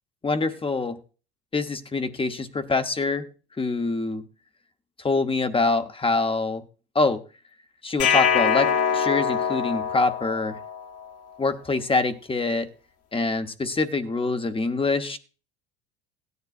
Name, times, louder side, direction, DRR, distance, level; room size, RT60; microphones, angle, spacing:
voice 1, 0.2-1.0 1.5-3.3 3.6-4.2 5.0-6.6 6.9-7.2 7.8-10.6 11.4-12.7 13.1-15.2, left 3 dB, 20° left, 9 dB, 0.9 m, -25 dB
sound 1, 8.0-11.1, left 7 dB, 50° left, 1.5 m, -24 dB
16.5 x 9.6 x 2.5 m, 0.36 s
hypercardioid pair, 80°, 30 cm